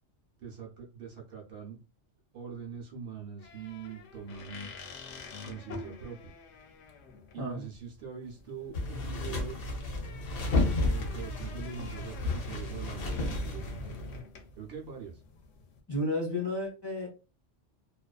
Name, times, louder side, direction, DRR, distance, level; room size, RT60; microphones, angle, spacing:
voice 1, 0.4-1.8 2.3-4.7 5.4-6.3 7.3-9.6 10.8-14.0 14.6-15.2, right 7 dB, 60° right, 0.8 m, -43 dB
sound 1, 3.4-15.8, left 4 dB, 85° left, 0.9 m, -48 dB
sound 2, 8.7-14.2, left 2 dB, 60° left, 0.8 m, -32 dB
voice 2, 15.9-17.1, left 1 dB, 25° left, 0.6 m, -32 dB
2.4 x 2.2 x 2.2 m
omnidirectional pair, 1.2 m